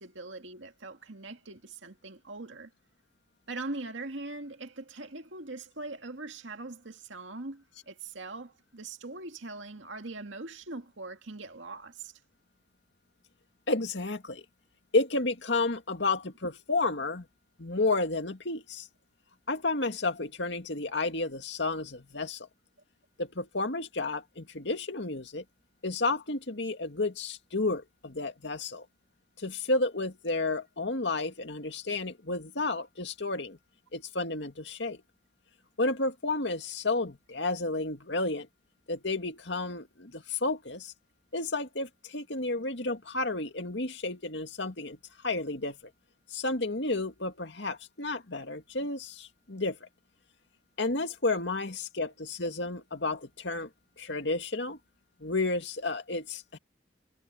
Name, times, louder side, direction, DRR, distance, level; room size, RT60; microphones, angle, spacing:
voice 1, 0.0-2.7 3.5-12.1, right 2 dB, 90° right, 2.1 m, -41 dB
voice 2, 13.7-14.4 14.9-17.3 17.6-18.9 19.5-22.5 23.2-25.4 25.8-28.9 29.4-33.6 33.9-35.0 35.8-38.5 38.9-40.9 41.3-45.0 45.2-45.8 46.3-49.9 50.8-53.7 54.0-54.8 55.2-56.6, left 3 dB, 70° left, 2.2 m, -31 dB
head